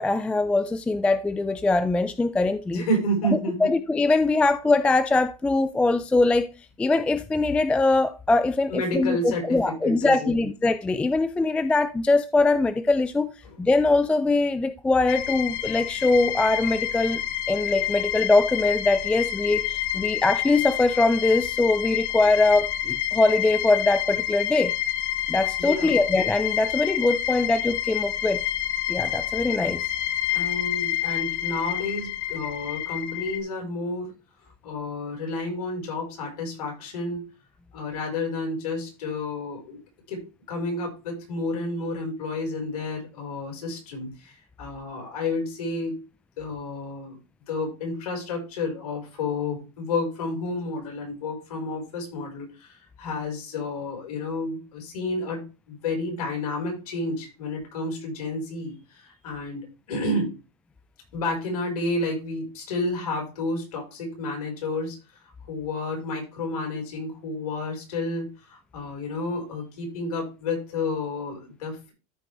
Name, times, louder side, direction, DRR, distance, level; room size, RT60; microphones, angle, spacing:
voice 1, 0.0-2.8 3.6-6.5 6.8-13.3 13.6-17.2 17.5-24.7 25.3-28.4 28.9-29.8, left 3 dB, 5° left, 0.3 m, -22 dB
voice 2, 2.7-3.7 8.7-10.5 13.4-13.5 25.6-26.0 30.3-34.1 34.4-37.2 37.7-39.8 40.1-46.0 46.4-47.1 47.5-60.3 61.1-71.9, left 2 dB, 85° left, 5.0 m, -31 dB
sound 1, 15.1-33.4, left 12 dB, 60° left, 1.0 m, -28 dB
14.0 x 4.8 x 3.4 m
supercardioid pair, 140°, 19 cm